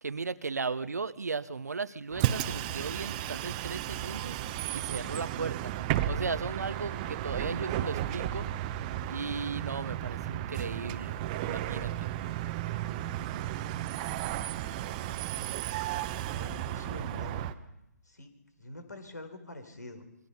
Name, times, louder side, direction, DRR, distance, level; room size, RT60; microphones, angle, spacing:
voice 1, 0.0-4.4 4.7-5.8 6.1-8.5 9.1-12.1, right 4 dB, 70° right, 16 dB, 1.0 m, -36 dB
Bus, 2.1-17.5, right 12 dB, 25° right, 1.0 m, -34 dB
voice 2, 15.1-15.6 16.3-17.4 18.1-18.3 18.6-20.0, left 1 dB, 75° left, 9 dB, 4.4 m, -45 dB
26.5 x 23.0 x 5.7 m, 0.85 s
figure-of-eight pair, 135°, 9 cm